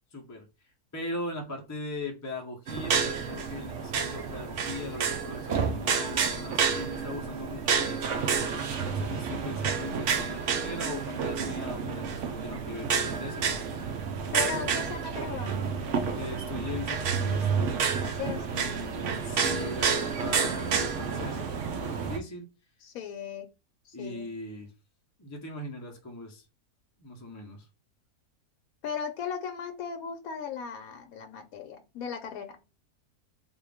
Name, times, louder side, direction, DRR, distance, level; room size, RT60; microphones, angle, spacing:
voice 1, 0.1-0.5 0.9-8.3 8.9-13.8 16.2-17.7 18.5-22.5 23.9-24.7 25.2-26.4 27.0-27.7, left 2 dB, 20° left, 0.4 m, -39 dB
sound 1, 2.7-22.2, right 6 dB, 60° right, 0.9 m, -30 dB
voice 2, 14.3-15.5 18.0-18.9 22.8-23.5 23.8-24.3 28.8-32.6, left 7 dB, 70° left, 1.0 m, -37 dB
3.7 x 2.5 x 3.4 m
omnidirectional pair, 1.6 m